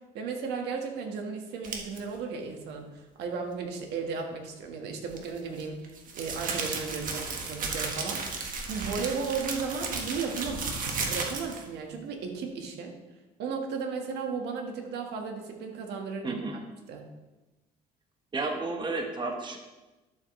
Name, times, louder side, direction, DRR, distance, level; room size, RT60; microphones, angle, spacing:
voice 1, 0.1-12.9 13.4-16.6 16.9-17.1, right 5 dB, 80° right, 2 dB, 1.6 m, -35 dB
sound 1, 1.6-2.0 5.1-11.7, right 4 dB, 55° right, 1.6 m, -34 dB
voice 2, 16.2-16.6 18.3-19.6, right 3 dB, 25° right, 3 dB, 1.2 m, -32 dB
11.5 x 7.4 x 3.2 m, 1.1 s
cardioid pair, 110°, 17 cm